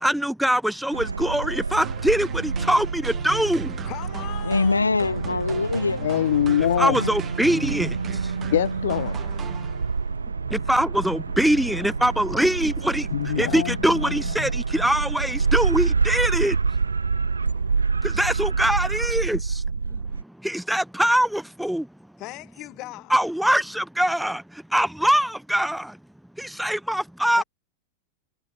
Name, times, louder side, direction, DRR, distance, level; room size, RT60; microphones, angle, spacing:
voice 1, 0.0-3.7 6.8-8.3 10.5-16.6 18.0-19.6 20.4-21.9 23.1-26.0 26.4-27.4, equal, ahead, 0.7 m, -23 dB
sound 1, 0.9-20.2, right 4 dB, 75° right, 1.0 m, -27 dB
sound 2, 1.8-10.2, right 8 dB, 25° right, 3.1 m, -39 dB
voice 2, 3.8-4.9 22.2-23.2 27.3-27.4, left 20 dB, 40° left, 3.4 m, -38 dB
voice 3, 4.4-6.0 6.6-7.1, left 3 dB, 80° left, 0.8 m, -24 dB
voice 4, 6.0-7.0 8.5-9.2 13.1-14.2, left 11 dB, 60° left, 0.4 m, -23 dB
figure-of-eight pair, 90°, 0 cm